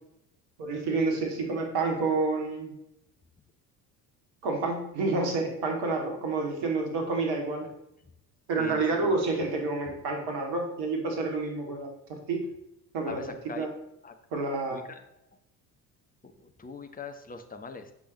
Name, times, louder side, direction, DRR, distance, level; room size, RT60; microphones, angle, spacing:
voice 1, 0.6-2.7 4.4-7.7 8.5-12.4 12.9-13.2 13.5-13.7 14.3-14.8, right 3 dB, 50° right, 2 dB, 2.7 m, -29 dB
voice 2, 8.6-9.2 13.0-13.7 14.0-14.1 14.7-15.0 16.2-17.9, left 4 dB, 15° left, 5 dB, 1.3 m, -42 dB
16.5 x 6.1 x 3.1 m, 0.82 s
figure-of-eight pair, 60°, 48 cm